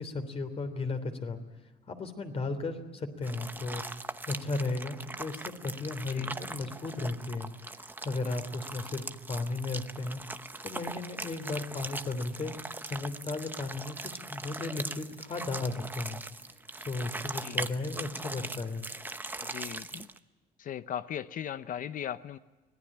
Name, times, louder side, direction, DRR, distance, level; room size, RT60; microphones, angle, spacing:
voice 1, 0.0-1.4 1.9-7.5 7.8-10.2 10.6-12.5 12.8-14.0 14.3-16.2 16.8-18.9, left 3 dB, 35° left, 8 dB, 3.3 m, -35 dB
sound 1, 3.2-20.2, right 2 dB, 10° right, 0.9 m, -40 dB
voice 2, 17.4-17.7 19.4-20.1 20.6-22.4, left 10 dB, 50° left, 13 dB, 0.7 m, -38 dB
25.0 x 17.5 x 8.7 m, 1.1 s
cardioid pair, 110°, 17 cm